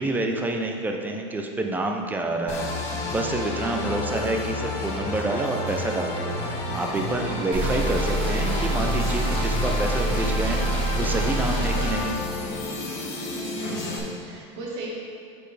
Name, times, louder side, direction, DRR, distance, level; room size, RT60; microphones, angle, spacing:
voice 1, 0.0-12.2, right 2 dB, 10° right, 2 dB, 0.5 m, -28 dB
sound 1, 2.5-14.0, left 2 dB, 50° left, 1.2 m, -31 dB
voice 2, 3.6-4.0 7.2-7.8 13.5-14.9, right 2 dB, 75° right, -5 dB, 1.7 m, -37 dB
sound 2, 7.5-11.9, right 1 dB, 30° right, 1.4 m, -26 dB
9.6 x 4.3 x 3.3 m, 2.4 s
supercardioid pair, 135°, 15 cm